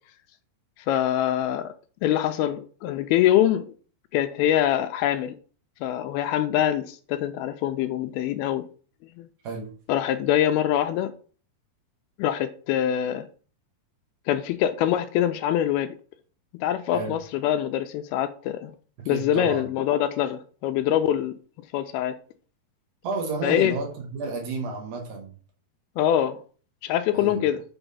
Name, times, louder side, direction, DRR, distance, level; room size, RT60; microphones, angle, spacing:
voice 1, 0.9-1.7 2.0-3.7 4.1-5.4 5.8-8.6 9.2-9.3 9.9-11.1 12.2-13.3 14.3-15.9 16.6-18.7 19.1-21.3 21.7-22.2 23.4-23.8 26.0-26.4 26.8-27.6, left 11 dB, 80° left, 2.4 m, -24 dB
voice 2, 16.9-17.2 19.0-19.6 23.0-25.3 27.1-27.5, right 4 dB, 70° right, 3.1 m, -31 dB
7.0 x 3.5 x 5.5 m
omnidirectional pair, 4.6 m